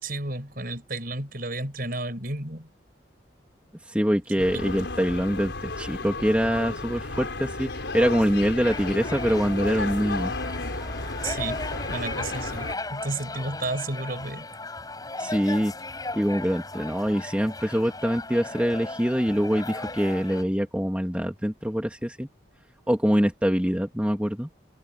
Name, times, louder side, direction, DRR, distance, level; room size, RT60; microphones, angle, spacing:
voice 1, 0.0-2.7 4.5-4.6 11.2-14.5, right 2 dB, 50° right, 6.6 m, -32 dB
voice 2, 3.9-10.3 15.2-15.7 16.1-22.3 22.9-24.5, equal, 5° right, 2.1 m, -24 dB
sound 1, 4.4-12.7, left 2 dB, 85° left, 4.5 m, -33 dB
sound 2, 8.6-20.4, left 2 dB, 20° left, 7.1 m, -37 dB
head